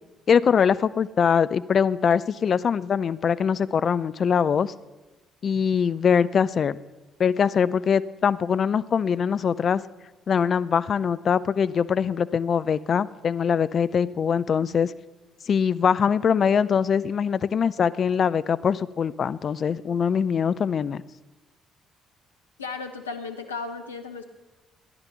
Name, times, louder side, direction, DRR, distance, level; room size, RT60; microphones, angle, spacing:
voice 1, 0.3-4.7 5.4-6.8 7.2-9.8 10.3-14.9 15.5-21.0, left 7 dB, 50° left, 16 dB, 0.4 m, -22 dB
voice 2, 22.6-24.2, left 4 dB, 90° left, 5 dB, 0.9 m, -35 dB
14.5 x 10.5 x 5.6 m, 1.1 s
figure-of-eight pair, 45°, 0 cm